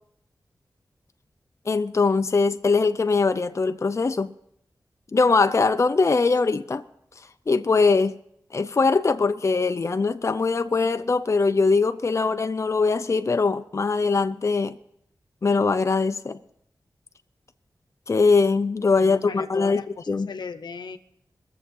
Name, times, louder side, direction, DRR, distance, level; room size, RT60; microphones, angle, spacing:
voice 1, 1.7-4.3 5.1-6.8 7.5-8.2 8.5-14.7 15.4-16.4 18.1-19.8 20.1-20.3, left 4 dB, 40° left, 0.5 m, -21 dB
voice 2, 19.0-21.0, left 5 dB, 90° left, 0.8 m, -37 dB
21.0 x 7.2 x 5.5 m
wide cardioid pair, 80°, 7 cm